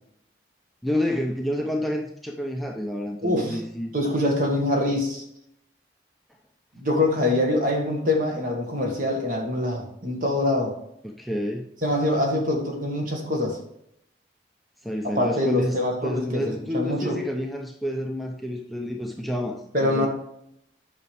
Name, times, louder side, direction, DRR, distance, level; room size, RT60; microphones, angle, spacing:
voice 1, 0.8-3.9 11.0-11.7 14.8-20.1, equal, ahead, 1 dB, 0.6 m, -29 dB
voice 2, 3.2-3.6 3.9-5.2 6.7-10.7 11.8-13.6 15.0-17.2 19.7-20.1, left 1 dB, 50° right, 1 dB, 1.8 m, -24 dB
9.5 x 5.9 x 3.4 m, 0.75 s
head